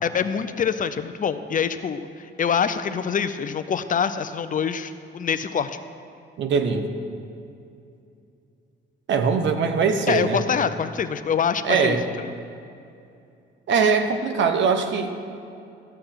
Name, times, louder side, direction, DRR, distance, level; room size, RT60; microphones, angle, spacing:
voice 1, 0.0-5.8 10.1-12.3, left 7 dB, 40° left, 11 dB, 0.5 m, -25 dB
voice 2, 6.4-6.9 9.1-10.4 11.6-12.0 13.7-15.1, right 5 dB, 65° right, 7 dB, 1.0 m, -21 dB
14.0 x 6.8 x 5.7 m, 2.6 s
cardioid pair, 90°, 20 cm